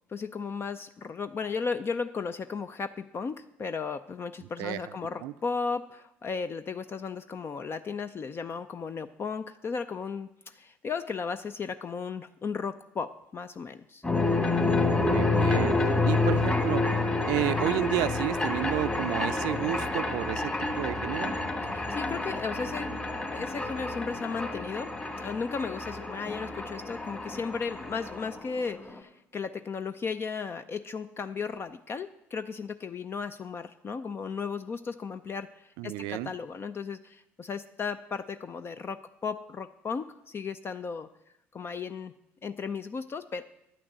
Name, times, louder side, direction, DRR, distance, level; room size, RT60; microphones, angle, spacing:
voice 1, 0.1-14.0 21.6-23.1 23.3-24.9 25.2-41.1 41.5-42.1 42.4-43.4, left 5 dB, 35° left, 11 dB, 0.5 m, -35 dB
voice 2, 4.6-4.9 5.2-5.3 15.0-16.9 17.3-21.4 35.8-36.3, right 15 dB, 70° right, 15 dB, 0.4 m, -31 dB
sound 1, 14.0-29.0, left 3 dB, 20° left, 2.3 m, -29 dB
10.0 x 6.0 x 8.1 m, 0.82 s
hypercardioid pair, 65°, 7 cm